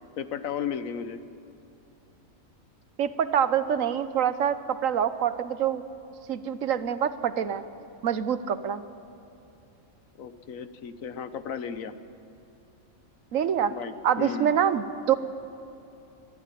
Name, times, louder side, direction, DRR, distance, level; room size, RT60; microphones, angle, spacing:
voice 1, 0.2-1.2 10.2-11.9 13.7-14.5, left 7 dB, 85° left, 11 dB, 1.4 m, -34 dB
voice 2, 3.0-5.8 6.3-7.6 8.0-8.8 13.3-13.7 14.0-15.1, right 8 dB, 80° right, 12 dB, 1.3 m, -25 dB
21.0 x 13.5 x 9.9 m, 2.8 s
omnidirectional pair, 1.4 m